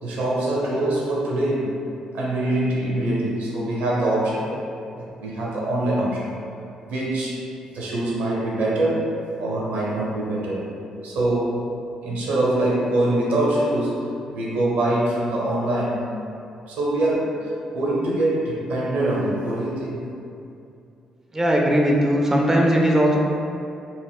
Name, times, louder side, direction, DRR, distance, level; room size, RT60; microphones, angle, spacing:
voice 1, 0.0-1.8 2.1-4.5 4.9-6.3 6.9-7.4 7.7-10.7 11.0-11.6 12.0-16.0 16.7-20.1, right 1 dB, 70° right, -5 dB, 0.6 m, -24 dB
voice 2, 21.3-23.2, equal, 15° right, -1 dB, 0.4 m, -18 dB
2.3 x 2.0 x 3.3 m, 2.6 s
hypercardioid pair, 45°, 3 cm